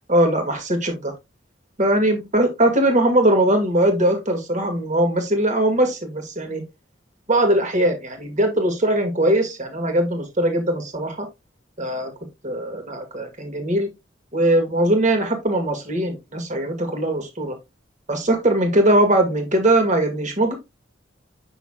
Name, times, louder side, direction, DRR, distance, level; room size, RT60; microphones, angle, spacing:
voice 1, 0.1-1.1 1.8-6.6 7.3-11.3 11.8-12.1 12.4-13.9 14.3-17.5 18.1-20.5, right 1 dB, 40° right, 1.8 m, -20 dB
8.0 x 6.1 x 2.3 m
head